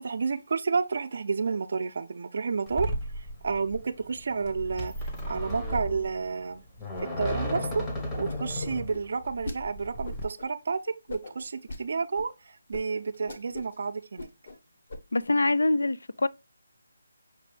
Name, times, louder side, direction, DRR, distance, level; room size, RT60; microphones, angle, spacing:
voice 1, 0.0-2.9 3.4-6.6 7.0-7.8 8.2-14.3, right 5 dB, 50° right, 0.5 m, -30 dB
sound 1, 2.7-10.2, equal, 15° left, 0.8 m, -35 dB
sound 2, 6.9-7.4 7.6-9.6 10.0-10.5 11.1-11.8 12.2-12.3 12.7-12.8 13.1-13.8 14.0-14.6 14.9-15.3, left 2 dB, 50° left, 1.1 m, -40 dB
voice 2, 15.1-16.3, left 2 dB, 85° left, 0.4 m, -24 dB
5.9 x 2.7 x 3.3 m
figure-of-eight pair, 165°, 0 cm